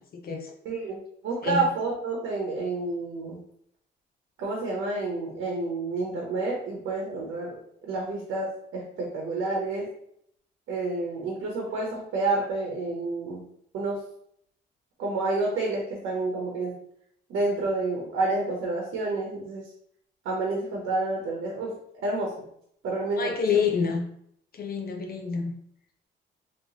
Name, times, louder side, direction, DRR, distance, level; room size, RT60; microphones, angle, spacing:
voice 1, 0.1-0.5 1.4-1.7 23.2-24.1 24.5-25.5, left 6 dB, 50° left, 2 dB, 0.6 m, -27 dB
voice 2, 0.6-1.0 1.2-3.4 4.4-7.6 7.9-9.9 10.7-13.4 13.7-14.0 15.0-16.7 17.3-19.6 20.2-21.7 22.0-22.3 22.8-23.6, right 3 dB, 80° right, -2 dB, 0.8 m, -29 dB
3.0 x 3.0 x 2.8 m, 0.69 s
cardioid pair, 90°, 20 cm